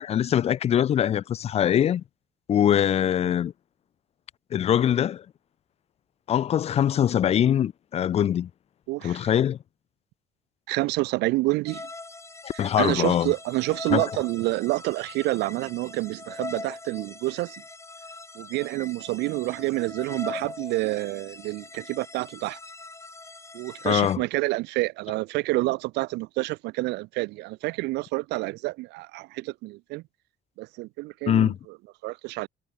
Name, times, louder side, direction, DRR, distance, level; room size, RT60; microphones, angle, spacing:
voice 1, 0.0-2.0 2.5-3.5 4.5-5.2 6.3-8.5 9.0-9.6 12.4-13.3 13.9-14.0 23.8-24.2 31.3-31.6, left 10 dB, 40° left, 0.4 m, -23 dB
voice 2, 8.9-9.2 10.7-11.9 12.8-17.6 18.4-22.6 23.5-30.0 30.6-31.5 32.0-32.5, right 21 dB, 85° right, 0.6 m, -28 dB
sound 1, 11.7-24.2, left 3 dB, 15° left, 3.9 m, -42 dB
cardioid pair, 110°, 17 cm